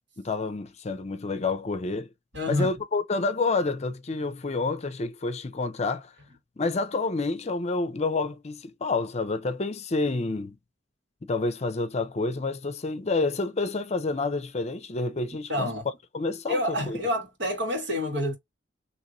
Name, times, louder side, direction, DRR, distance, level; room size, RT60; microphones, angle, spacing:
voice 1, 0.2-2.1 2.5-6.1 6.6-10.6 11.2-15.7 16.1-17.0, left 3 dB, 40° left, 0.6 m, -28 dB
voice 2, 2.3-2.7 15.5-15.8 16.5-18.4, left 1 dB, 80° right, 1.8 m, -28 dB
3.0 x 2.6 x 2.9 m
head